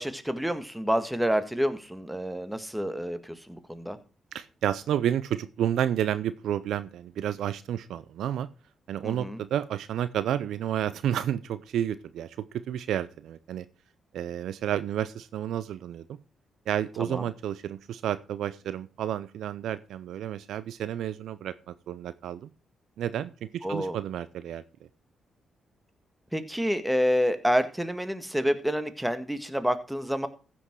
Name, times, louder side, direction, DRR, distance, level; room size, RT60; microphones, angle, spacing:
voice 1, 0.0-4.0 9.0-9.4 17.0-17.2 23.6-24.0 26.3-30.3, equal, 5° right, 10 dB, 1.8 m, -28 dB
voice 2, 4.3-8.5 8.9-13.7 14.1-16.1 16.7-22.5 23.0-24.6, right 10 dB, 75° right, 15 dB, 0.5 m, -31 dB
15.0 x 6.2 x 4.6 m, 0.34 s
hypercardioid pair, 45°, 0 cm